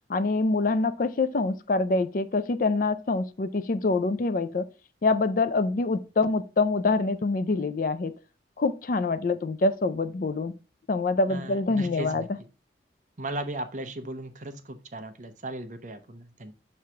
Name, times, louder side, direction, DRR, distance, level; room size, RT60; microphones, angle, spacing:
voice 1, 0.1-4.7 5.0-8.1 8.6-10.5 10.9-12.4, left 3 dB, 50° left, 0.4 m, -25 dB
voice 2, 11.3-12.3 13.2-16.5, right 1 dB, 45° right, 0.8 m, -36 dB
6.2 x 3.2 x 5.6 m
head